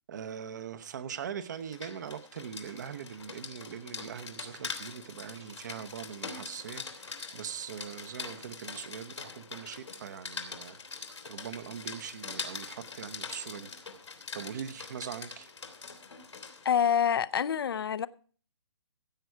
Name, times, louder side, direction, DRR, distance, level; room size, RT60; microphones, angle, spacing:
voice 1, 0.1-13.7 14.3-15.5, right 8 dB, 40° right, 0.9 m, -41 dB
Rain, 1.5-16.7, left 5 dB, 85° left, 2.7 m, -43 dB
sound 1, 3.9-4.8 5.2-6.1, right 6 dB, 75° right, 2.8 m, -58 dB
voice 2, 16.6-18.1, left 8 dB, 55° left, 0.7 m, -26 dB
16.0 x 8.1 x 4.6 m
hypercardioid pair, 160°, 15 cm